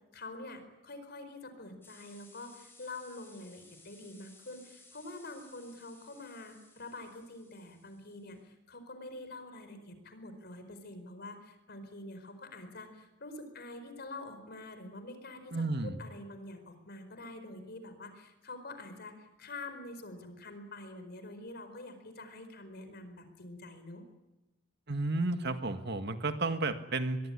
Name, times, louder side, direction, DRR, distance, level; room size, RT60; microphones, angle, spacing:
voice 1, 0.1-24.0, left 2 dB, 55° left, 9 dB, 4.6 m, -46 dB
sound 1, 1.8-8.4, left 2 dB, 10° left, 6.7 m, -60 dB
voice 2, 15.5-15.9 24.9-27.2, right 2 dB, 60° right, 8 dB, 1.8 m, -32 dB
24.0 x 22.0 x 10.0 m, 1.1 s
head